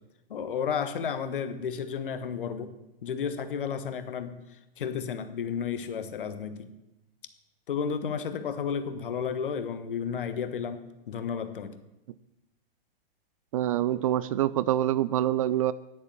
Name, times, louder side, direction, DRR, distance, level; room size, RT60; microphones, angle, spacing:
voice 1, 0.3-2.7 3.0-4.4 4.8-6.7 7.7-11.8, left 7 dB, 60° left, 10 dB, 1.2 m, -32 dB
voice 2, 13.5-15.7, right 12 dB, 35° right, 16 dB, 0.4 m, -25 dB
9.9 x 8.6 x 6.8 m, 0.97 s
figure-of-eight pair, 110°, 30 cm